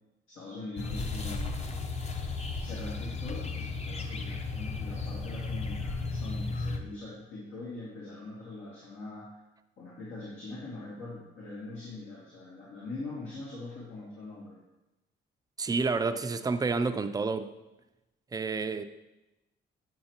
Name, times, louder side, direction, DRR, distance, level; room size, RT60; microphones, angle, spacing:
voice 1, 0.3-1.9 2.6-9.4 9.8-14.6, left 2 dB, 85° left, -8 dB, 2.2 m, -42 dB
sound 1, 0.8-6.8, left 3 dB, 35° left, 0.7 m, -34 dB
voice 2, 15.6-17.5 18.3-18.8, right 4 dB, 20° right, 9 dB, 0.4 m, -29 dB
7.7 x 6.2 x 2.9 m, 0.98 s
cardioid pair, 90°, 20 cm